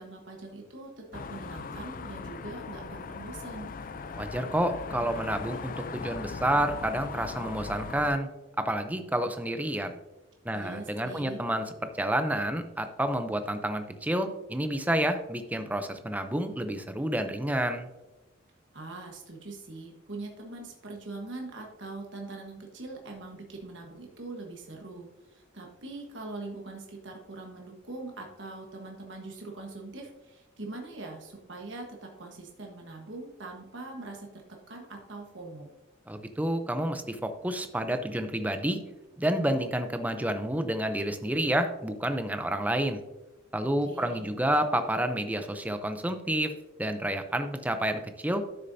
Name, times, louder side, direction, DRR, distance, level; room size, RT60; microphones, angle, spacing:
voice 1, 0.0-3.7 10.5-11.5 18.7-34.4 34.7-35.7 43.8-44.3, right 2 dB, 65° right, 1 dB, 1.3 m, -42 dB
sound 1, 1.1-8.2, left 4 dB, 45° left, 0.4 m, -39 dB
voice 2, 4.2-8.3 8.6-10.0 10.4-11.6 12.0-17.9 36.1-38.8 39.2-43.0 43.5-46.5 46.8-48.4, right 1 dB, 10° right, 8 dB, 0.6 m, -29 dB
12.0 x 6.6 x 2.7 m, 1.0 s
head